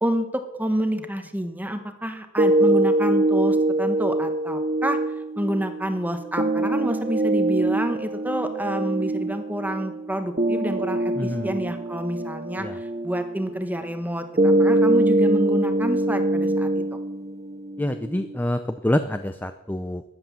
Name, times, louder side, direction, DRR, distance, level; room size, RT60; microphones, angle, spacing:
voice 1, 0.0-5.0 5.4-16.7, equal, 10° right, 7 dB, 1.3 m, -28 dB
sound 1, 2.4-18.4, right 1 dB, 35° right, 0.8 m, -23 dB
voice 2, 11.2-11.5 12.6-12.8 17.8-20.0, left 1 dB, 10° left, 9 dB, 0.6 m, -26 dB
13.5 x 10.5 x 7.1 m, 0.97 s
head